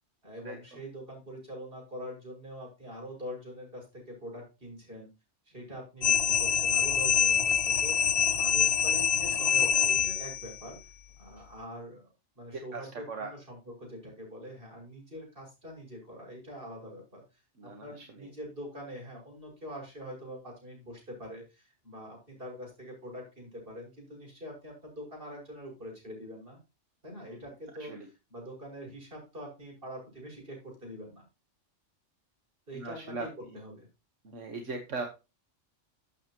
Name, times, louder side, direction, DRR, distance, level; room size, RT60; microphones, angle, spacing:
voice 1, 0.2-5.1 5.4-10.8 11.2-12.0 12.3-17.2 17.6-26.6 27.0-27.9 28.3-31.2 32.7-33.3 33.5-33.9, equal, 45° right, 0 dB, 6.4 m, -44 dB
sound 1, 6.0-10.5, left 8 dB, 60° left, 1.2 m, -25 dB
voice 2, 12.7-13.3 17.6-18.3 27.1-27.4 27.7-28.1 32.7-33.6 34.3-35.1, right 4 dB, 80° right, 4 dB, 1.7 m, -40 dB
12.5 x 7.9 x 3.0 m, 0.28 s
omnidirectional pair, 1.2 m